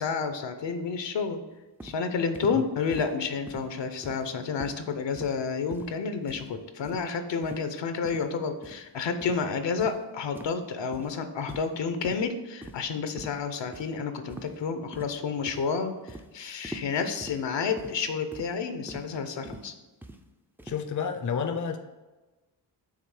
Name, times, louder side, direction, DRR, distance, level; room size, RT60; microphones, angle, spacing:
voice 1, 0.0-1.4 1.8-19.7, left 5 dB, 75° left, 8 dB, 0.7 m, -30 dB
sound 1, 1.8-2.0 2.3-2.6 2.9-3.1 3.5-3.7 4.0-4.3 4.6-4.8 5.1-5.4 5.7-6.0 6.3-6.5 6.8-7.1 7.4-7.6 8.0-8.2 8.6-8.8 9.2-9.4 9.8-10.0 10.3-10.6 10.9-11.1 11.5-11.8 12.0-12.2 12.6-12.9 13.2-13.4 13.7-13.9 14.3-14.6 14.9-15.2 15.5-15.7 16.1-16.3 16.6-16.9 17.2-17.4 17.8-18.0 18.3-18.5 18.9-19.1 19.4-19.7 20.0-20.2 20.6-20.8, right 1 dB, 5° right, 0.3 m, -43 dB
voice 2, 20.6-21.8, left 6 dB, 45° left, 7 dB, 0.6 m, -30 dB
5.7 x 3.6 x 4.8 m, 1.2 s
wide cardioid pair, 105°, 44 cm